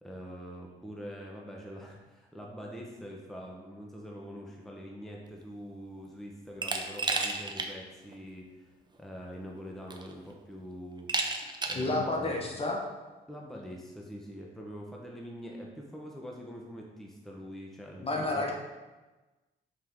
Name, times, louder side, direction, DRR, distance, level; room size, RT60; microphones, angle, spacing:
voice 1, 0.0-8.7 9.0-11.1 11.7-12.3 13.3-18.5, equal, ahead, -1 dB, 0.9 m, -44 dB
Glass, 6.6-7.7 8.1-8.2 9.3-9.4 9.9-10.3 11.1-11.9, right 3 dB, 20° right, 0.7 m, -32 dB
voice 2, 11.7-12.8 18.0-18.5, left 2 dB, 30° left, 0 dB, 1.1 m, -30 dB
5.7 x 4.7 x 3.6 m, 1.2 s
cardioid pair, 90°, 20 cm